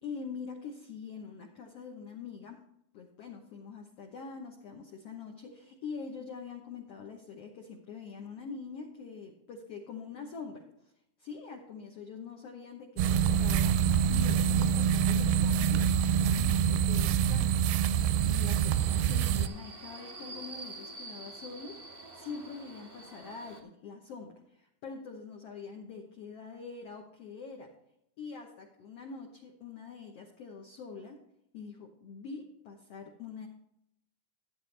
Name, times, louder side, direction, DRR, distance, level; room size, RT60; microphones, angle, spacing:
voice 1, 0.0-2.6 2.9-10.6 11.2-21.8 22.1-27.7 28.2-31.2 31.5-33.5, left 5 dB, 85° left, 2 dB, 1.3 m, -44 dB
sound 1, 13.0-19.5, right 8 dB, 85° right, 2.6 m, -26 dB
Subway metro underground, 18.0-23.6, right 2 dB, 65° right, 0.5 m, -47 dB
14.0 x 8.8 x 3.3 m, 0.78 s
omnidirectional pair, 4.4 m